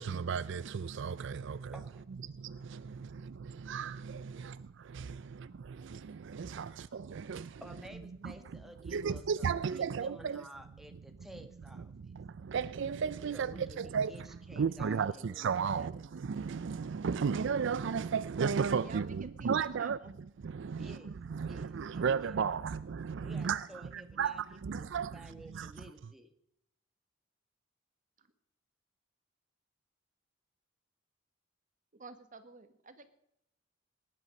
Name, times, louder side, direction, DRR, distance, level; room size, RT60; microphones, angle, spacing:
voice 1, 0.0-1.7 2.3-7.5 8.2-8.3 8.9-10.4 11.9-14.3 14.6-20.0 20.4-21.0 21.3-25.7, right 6 dB, 65° right, 0.4 m, -34 dB
voice 2, 7.6-12.1 13.3-15.9 20.8-21.2 21.5-22.4 23.2-26.3, equal, ahead, 1.4 m, -53 dB
voice 3, 18.8-20.2 28.2-28.3 31.9-33.1, right 4 dB, 40° right, 1.5 m, -50 dB
18.5 x 11.0 x 5.3 m
head